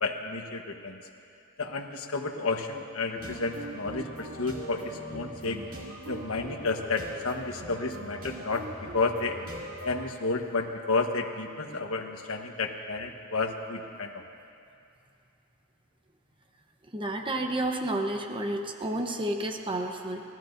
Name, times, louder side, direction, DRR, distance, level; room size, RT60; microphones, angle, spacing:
voice 1, 0.0-1.0 1.6-5.6 6.1-8.7 8.9-9.4 9.8-14.2, left 3 dB, 80° left, 3 dB, 1.2 m, -31 dB
sound 1, 3.2-10.1, right 1 dB, 80° right, 2.4 m, -41 dB
voice 2, 16.9-20.2, right 1 dB, 25° right, 3 dB, 1.0 m, -30 dB
29.5 x 14.0 x 2.7 m, 2.5 s
head